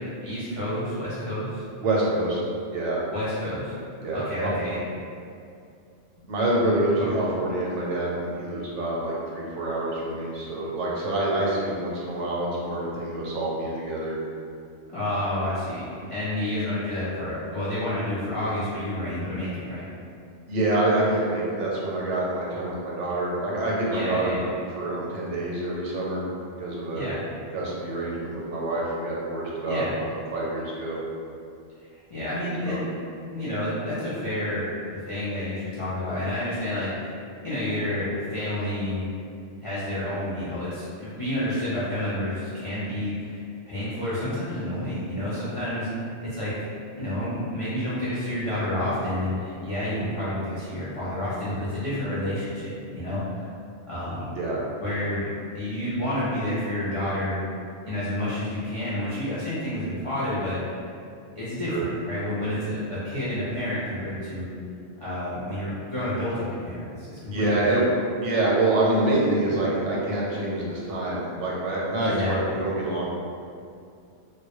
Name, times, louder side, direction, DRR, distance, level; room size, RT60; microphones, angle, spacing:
voice 1, 0.2-1.6 3.1-3.7 4.1-4.8 7.0-7.1 14.9-19.9 23.9-24.4 26.9-27.2 29.7-30.0 32.1-32.9 33.3-34.6 34.9-39.1 39.6-45.9 46.2-46.7 47.0-52.7 52.9-53.5 53.9-54.3 54.8-55.3 55.5-57.4 57.8-60.8 61.4-64.5 65.0-67.7 72.0-72.4, left 1 dB, 55° left, -11 dB, 0.3 m, -29 dB
voice 2, 1.8-2.4 2.7-3.0 4.0-4.5 6.3-14.1 20.5-24.4 24.7-26.2 26.6-27.0 27.5-31.0 32.7-32.8 54.4-54.6 61.7-61.8 67.3-67.8 68.2-73.0, right 2 dB, 85° right, -5 dB, 0.9 m, -26 dB
2.2 x 2.0 x 2.9 m, 2.4 s
omnidirectional pair, 1.2 m